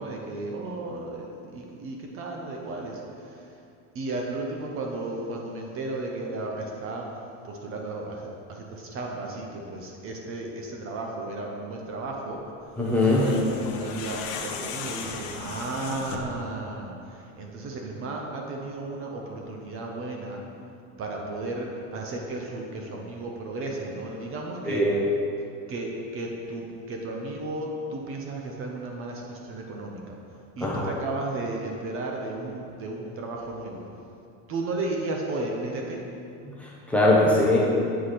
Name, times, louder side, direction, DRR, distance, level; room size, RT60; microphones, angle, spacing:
voice 1, 0.0-3.4 3.9-7.1 7.4-12.4 13.0-20.4 21.0-24.8 25.7-30.2 30.6-33.8 34.5-36.0, right 2 dB, 35° right, 0 dB, 0.8 m, -34 dB
sound 1, 12.8-16.4, left 6 dB, 85° left, 0.8 m, -36 dB
voice 2, 12.8-13.3 24.7-24.9 30.6-30.9 36.5-37.6, left 1 dB, 5° left, -5 dB, 0.8 m, -21 dB
8.1 x 4.7 x 4.2 m, 2.6 s
cardioid pair, 150°, 37 cm